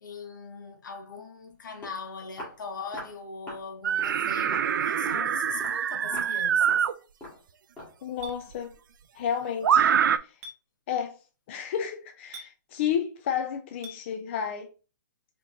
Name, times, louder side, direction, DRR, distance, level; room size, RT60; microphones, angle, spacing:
voice 1, 0.0-6.8, left 4 dB, 70° left, 1.1 m, -40 dB
Walk footsteps, 1.5-1.6 1.8-2.0 2.4-2.6 2.9-3.2 3.5-3.7 4.0-4.2 4.5-4.7 5.1-5.3 5.6-5.8 6.1-6.4 6.7-6.9 7.2-7.4 7.8-8.0, left 1 dB, 10° left, 1.6 m, -42 dB
sound 1, 3.8-6.9 8.3-8.4 9.6-10.2, right 8 dB, 75° right, 0.4 m, -24 dB
voice 2, 8.0-8.7 9.1-9.9 10.2-10.4 10.9-11.2 11.5-14.7, left 8 dB, 35° left, 0.4 m, -31 dB
Chink clink, 8.2-8.4 10.4-10.6 12.3-12.5 13.8-14.0, right 2 dB, 20° right, 0.7 m, -42 dB
4.3 x 3.0 x 2.6 m
hypercardioid pair, 160°, 11 cm